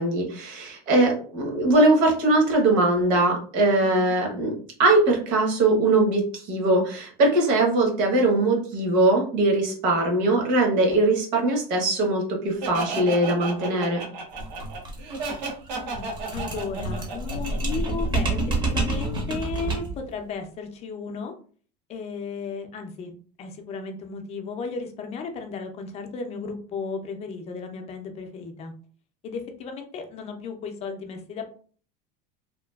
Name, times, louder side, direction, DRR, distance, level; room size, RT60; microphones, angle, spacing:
voice 1, 0.0-4.5 4.8-14.0, right 2 dB, 60° right, 0 dB, 1.1 m, -21 dB
voice 2, 3.8-4.2 15.7-21.3 21.9-28.7 29.2-31.5, left 5 dB, 30° left, 5 dB, 0.5 m, -35 dB
Laughter, 12.6-18.3, right 3 dB, 90° right, 1.0 m, -33 dB
sound 1, 14.3-20.0, right 2 dB, 20° right, 0.7 m, -28 dB
2.9 x 2.3 x 2.3 m, 0.43 s
supercardioid pair, 140°, 21 cm